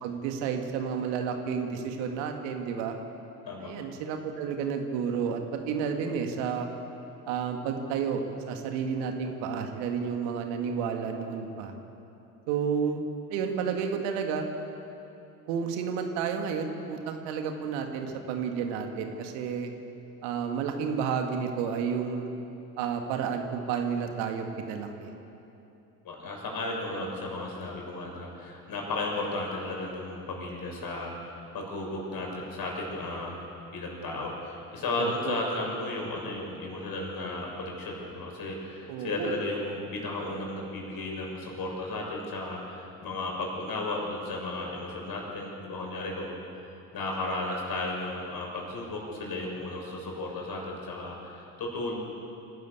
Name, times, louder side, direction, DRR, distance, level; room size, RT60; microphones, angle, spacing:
voice 1, 0.0-3.0 3.6-6.7 7.3-11.7 12.5-13.0 13.3-14.5 15.5-19.7 20.2-22.3 22.8-25.1 35.0-35.4 38.9-39.3, right 6 dB, 65° right, 4 dB, 2.2 m, -31 dB
voice 2, 26.0-33.3 33.7-46.4 46.9-51.9, left 2 dB, 45° left, -1 dB, 6.9 m, -34 dB
26.0 x 13.0 x 8.4 m, 2.9 s
hypercardioid pair, 60°, 48 cm